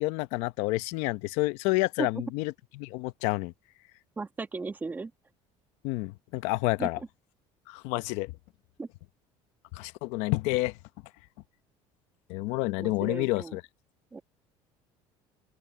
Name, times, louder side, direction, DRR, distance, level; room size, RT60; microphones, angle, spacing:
voice 1, 0.0-3.5 5.8-7.0 7.7-8.3 9.7-10.7 12.3-13.6, left 21 dB, 85° left, 0.8 m, -29 dB
voice 2, 4.2-5.1 6.8-7.1 8.8-8.9 12.8-13.5 14.1-14.2, right 3 dB, 15° right, 1.6 m, -35 dB
open air
cardioid pair, 140°, 11 cm